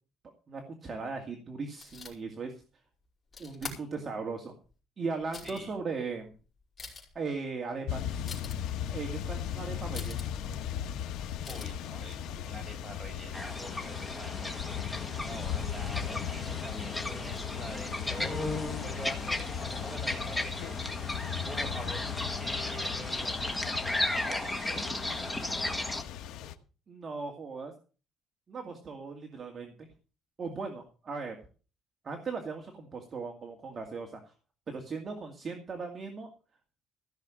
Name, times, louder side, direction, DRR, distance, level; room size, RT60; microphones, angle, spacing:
voice 1, 0.5-2.6 3.4-4.5 5.0-6.3 7.1-8.3 8.9-10.3 26.9-27.7 28.5-29.7 30.4-31.4 32.0-34.3 34.7-36.3, right 4 dB, 30° right, 3 dB, 2.2 m, -38 dB
sound 1, 1.8-2.1 3.3-3.8 4.6-4.7 5.2-5.7 6.3-6.4 6.6-7.2 8.3-8.6 9.9-10.3 11.4-11.7, left 4 dB, 25° left, 5.4 m, -43 dB
sound 2, 7.9-26.5, left 9 dB, 85° left, 1.4 m, -37 dB
voice 2, 11.5-20.9 21.5-25.8, right 1 dB, 10° right, 3 dB, 6.2 m, -46 dB
sound 3, 13.3-26.0, left 1 dB, 10° left, 1.6 m, -35 dB
15.5 x 6.6 x 7.7 m, 0.37 s
cardioid pair, 140°, 0 cm